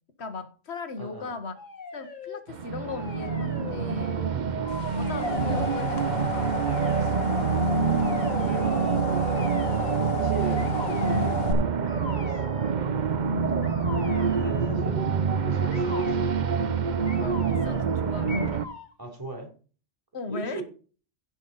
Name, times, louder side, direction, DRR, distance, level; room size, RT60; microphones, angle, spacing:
voice 1, 0.2-1.5 1.9-4.2 5.1-6.5 7.0-7.5 10.5-10.7 13.5-13.8 17.2-18.7 20.1-20.6, left 4 dB, 85° left, 9 dB, 1.6 m, -37 dB
voice 2, 1.0-1.4 4.3-4.8 7.1-7.9 8.4-12.8 14.3-15.0 15.4-16.3 16.5-16.8 19.0-19.5 20.3-20.6, right 2 dB, 20° right, 1 dB, 3.0 m, -38 dB
sound 1, 1.5-2.4 2.8-4.3 4.6-5.9 6.6-7.1 7.9-8.6 9.3-10.0 10.6-11.3 11.8-12.8 13.6-14.8 15.7-16.2 17.1-17.9 18.3-18.9, left 4 dB, 45° left, 1.4 m, -41 dB
sound 2, 2.5-18.7, right 6 dB, 50° right, 0.8 m, -26 dB
sound 3, 4.8-11.5, left 4 dB, 65° left, 1.5 m, -32 dB
16.0 x 5.5 x 4.0 m, 0.38 s
omnidirectional pair, 1.1 m